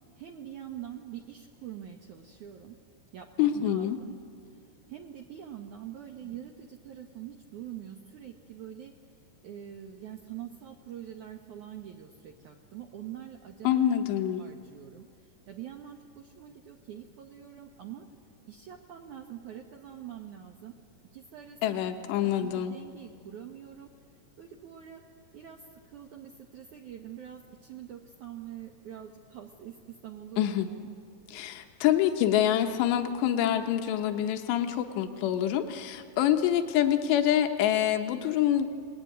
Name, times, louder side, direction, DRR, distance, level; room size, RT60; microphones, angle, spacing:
voice 1, 0.2-2.8 3.1-4.1 4.9-8.9 9.4-13.8 14.4-15.1 15.5-18.1 18.5-20.8 21.1-23.9 24.4-25.0 25.3-30.9, right 10 dB, 65° right, 2 dB, 2.0 m, -44 dB
voice 2, 3.4-4.0 13.6-14.4 21.6-22.7 30.4-30.7 31.3-38.7, left 11 dB, 90° left, 6 dB, 3.2 m, -26 dB
29.0 x 20.0 x 9.3 m, 2.3 s
omnidirectional pair, 4.8 m